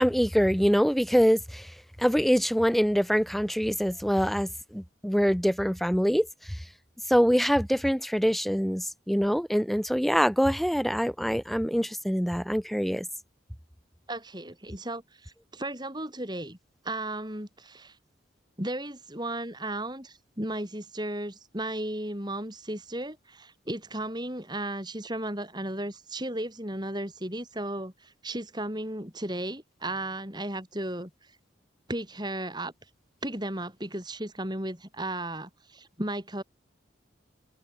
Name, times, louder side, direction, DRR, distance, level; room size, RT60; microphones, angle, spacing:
voice 1, 0.0-6.6 7.1-13.1, equal, ahead, 3.2 m, -25 dB
voice 2, 14.1-16.6 16.8-18.0 18.6-31.3 31.9-32.7 33.2-36.4, right 1 dB, 20° right, 6.8 m, -35 dB
head